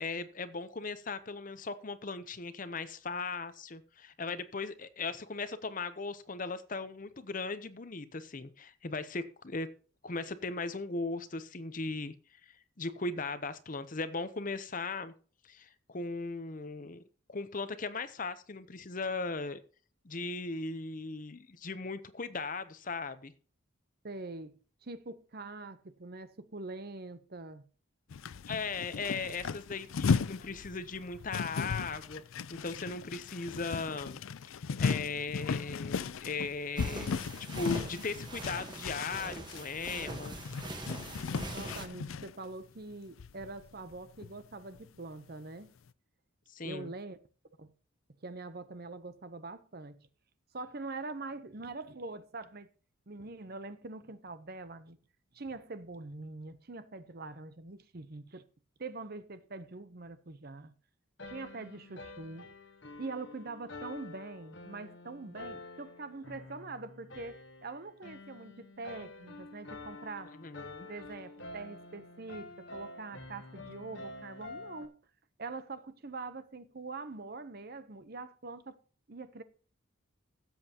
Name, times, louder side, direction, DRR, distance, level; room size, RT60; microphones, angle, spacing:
voice 1, 0.0-9.7 10.0-15.1 15.4-17.0 17.3-19.6 20.0-23.3 28.5-32.2 32.5-34.2 34.8-37.2 37.5-40.5 46.5-46.9 70.4-70.9, left 4 dB, 40° left, 0.7 m, -38 dB
voice 2, 24.0-27.6 41.5-45.7 46.6-47.2 47.6-47.7 48.2-50.1 50.5-52.7 53.1-55.0 55.3-58.5 58.8-60.7 61.3-62.5 63.0-70.4 70.8-75.0 75.4-78.8 79.1-79.4, right 3 dB, 45° right, 0.8 m, -44 dB
sound 1, 28.1-42.3 42.9-43.0 43.2-44.5 44.7-44.9, left 5 dB, 75° left, 0.4 m, -36 dB
sound 2, 36.8-41.9, right 2 dB, 20° right, 1.3 m, -43 dB
sound 3, 61.2-74.9, left 2 dB, 60° left, 1.3 m, -48 dB
16.0 x 7.7 x 2.9 m
head